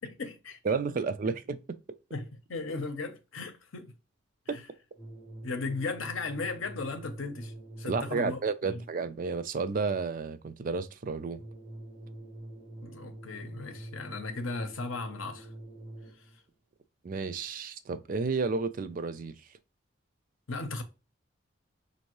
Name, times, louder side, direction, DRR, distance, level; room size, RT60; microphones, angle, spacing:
voice 1, 0.0-0.6 2.1-3.9 4.5-4.6 5.4-8.4 8.7-8.8 12.8-15.5 20.5-20.8, left 3 dB, 80° left, 0.8 m, -36 dB
voice 2, 0.6-1.8 4.5-4.6 7.8-11.4 17.0-19.3, right 4 dB, 40° right, 0.3 m, -31 dB
sound 1, 4.9-8.4 11.3-16.4, right 1 dB, 15° left, 1.2 m, -45 dB
5.2 x 2.7 x 3.0 m
head